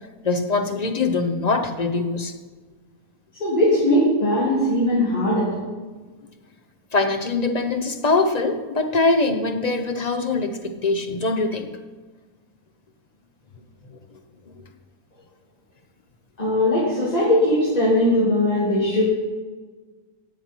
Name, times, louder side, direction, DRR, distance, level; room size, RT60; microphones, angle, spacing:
voice 1, 0.2-2.3 6.9-11.7, left 3 dB, 45° left, 6 dB, 0.5 m, -23 dB
voice 2, 3.4-5.5 16.4-19.0, left 1 dB, 25° left, -8 dB, 3.0 m, -19 dB
18.5 x 7.5 x 4.5 m, 1.4 s
omnidirectional pair, 1.6 m